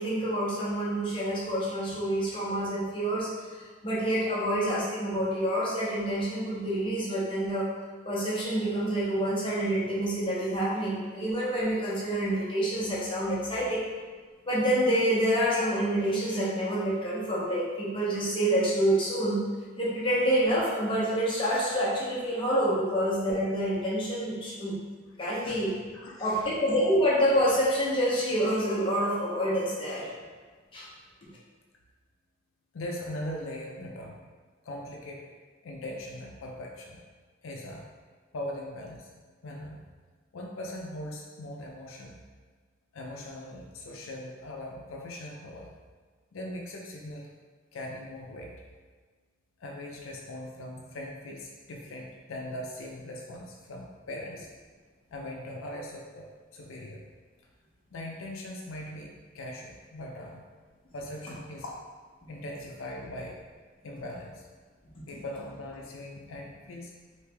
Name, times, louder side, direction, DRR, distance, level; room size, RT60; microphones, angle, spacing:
voice 1, 0.0-3.3 3.8-7.7 8.0-13.8 14.5-19.4 19.8-24.8 25.2-25.7 26.2-30.1 30.7-30.9, equal, 25° left, -7 dB, 0.9 m, -27 dB
voice 2, 25.9-26.5 32.7-34.2 34.6-35.3 35.6-37.0 37.4-37.9 38.3-39.1 39.4-39.8 40.3-42.2 42.9-45.7 46.3-47.3 47.7-48.6 49.6-54.5 55.1-57.0 57.9-60.4 60.9-61.9 62.3-63.4 63.8-64.5 65.1-66.9, left 1 dB, 85° left, -1 dB, 0.5 m, -40 dB
3.2 x 2.9 x 3.3 m, 1.5 s
head